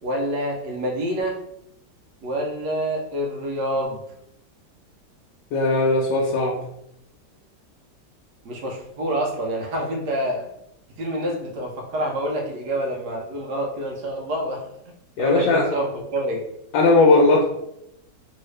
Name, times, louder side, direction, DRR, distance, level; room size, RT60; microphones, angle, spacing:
voice 1, 0.0-1.4 2.2-4.0 8.4-10.5 11.0-14.6 15.2-16.5, right 1 dB, 75° right, 0 dB, 1.2 m, -27 dB
voice 2, 5.5-6.6 15.2-15.6 16.7-17.4, left 2 dB, 90° left, -2 dB, 1.3 m, -18 dB
3.1 x 2.8 x 3.2 m, 0.80 s
omnidirectional pair, 1.9 m